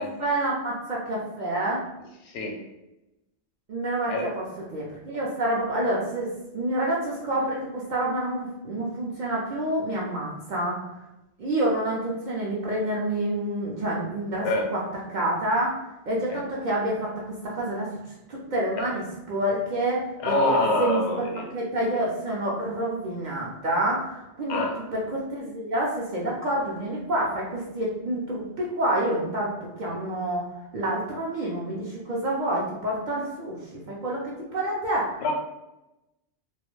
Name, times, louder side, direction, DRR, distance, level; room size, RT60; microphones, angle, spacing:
voice 1, 0.0-1.8 3.7-10.8 11.4-14.8 15.1-18.0 18.3-24.6 24.9-30.4 30.7-35.2, right 1 dB, 55° right, -4 dB, 0.5 m, -28 dB
voice 2, 2.3-2.6 4.1-4.3 14.4-14.7 16.3-16.4 18.8-18.9 20.2-21.4 24.5-24.8 35.2-35.3, left 2 dB, 80° left, 1 dB, 0.9 m, -25 dB
2.3 x 2.0 x 3.0 m, 0.93 s
omnidirectional pair, 1.1 m